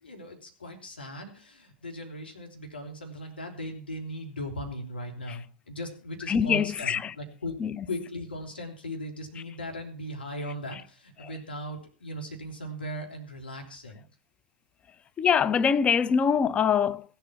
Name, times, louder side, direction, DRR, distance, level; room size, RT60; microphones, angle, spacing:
voice 1, 0.0-7.5 7.9-14.0, equal, 85° left, 3.3 m, -38 dB
voice 2, 6.3-7.1 7.6-7.8 15.2-17.0, left 7 dB, 20° left, 0.6 m, -24 dB
16.0 x 8.3 x 5.9 m
figure-of-eight pair, 100°, 5 cm